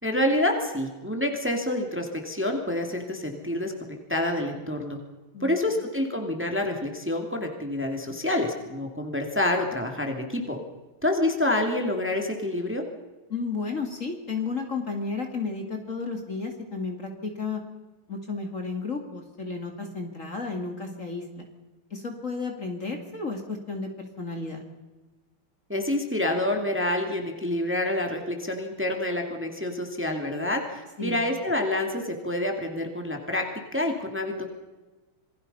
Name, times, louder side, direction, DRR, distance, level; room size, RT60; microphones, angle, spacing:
voice 1, 0.0-5.0 5.4-10.6 11.0-12.8 25.7-33.5 33.7-34.5, left 1 dB, 5° right, 3 dB, 2.5 m, -27 dB
voice 2, 13.3-17.6 18.1-21.5 21.9-24.6 31.0-31.3, left 4 dB, 35° left, 3 dB, 2.7 m, -33 dB
27.5 x 20.5 x 5.6 m, 1.2 s
omnidirectional pair, 2.3 m